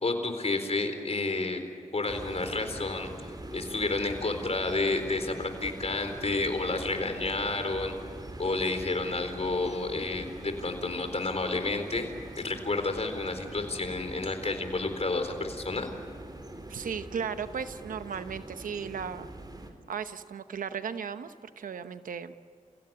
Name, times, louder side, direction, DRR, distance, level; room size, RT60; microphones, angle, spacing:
voice 1, 0.0-1.6 1.9-3.1 3.5-7.9 8.4-15.9, left 3 dB, 50° left, 7 dB, 4.0 m, -30 dB
sound 1, 2.1-19.7, right 1 dB, 30° right, 3.8 m, -43 dB
voice 2, 16.7-19.3 19.9-22.3, right 7 dB, 90° right, 11 dB, 0.9 m, -36 dB
29.5 x 16.5 x 8.9 m, 2.4 s
cardioid pair, 40°, 14 cm